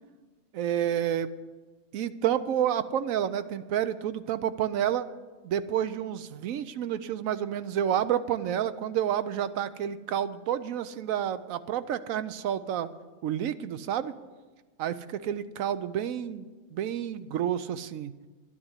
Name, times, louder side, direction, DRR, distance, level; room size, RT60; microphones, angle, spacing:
voice 1, 0.5-1.3 1.9-5.1 5.4-12.9 13.2-14.1 14.8-18.1, right 10 dB, 90° right, 13 dB, 1.1 m, -29 dB
12.0 x 9.9 x 8.1 m, 1.3 s
omnidirectional pair, 1.4 m